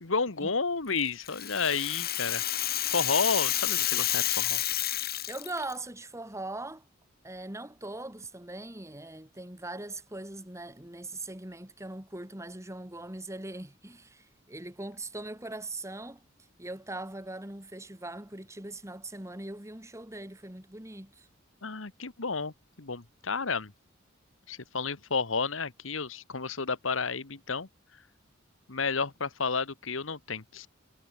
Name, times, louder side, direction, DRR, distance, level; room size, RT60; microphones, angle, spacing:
voice 1, 0.0-2.4 2.9-4.6 21.6-22.5 22.8-23.7 24.5-27.7 28.7-30.7, left 4 dB, 80° left, 1.6 m, -31 dB
Rattle (instrument), 1.0-5.7, left 13 dB, 50° left, 2.4 m, -30 dB
voice 2, 5.3-6.8 7.2-16.2 16.6-21.3, right 2 dB, 15° right, 2.5 m, -41 dB
head